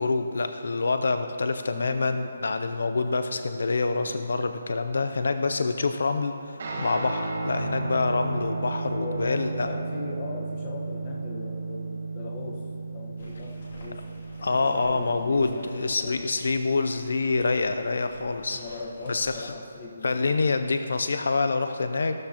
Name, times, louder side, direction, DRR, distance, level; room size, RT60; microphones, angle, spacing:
voice 1, 0.0-9.7 14.4-18.6 19.1-19.5 20.0-22.1, left 3 dB, 70° left, 8 dB, 0.5 m, -26 dB
voice 2, 1.7-2.3 9.0-12.6 12.9-14.0 14.6-16.3 18.5-20.4, left 2 dB, 25° left, -1 dB, 1.1 m, -39 dB
Guitar, 6.6-15.4, right 3 dB, 45° right, 1.7 m, -34 dB
sound 1, 13.2-19.4, left 1 dB, 45° left, 2.5 m, -50 dB
15.0 x 13.0 x 2.9 m, 2.8 s
hypercardioid pair, 175°, 0 cm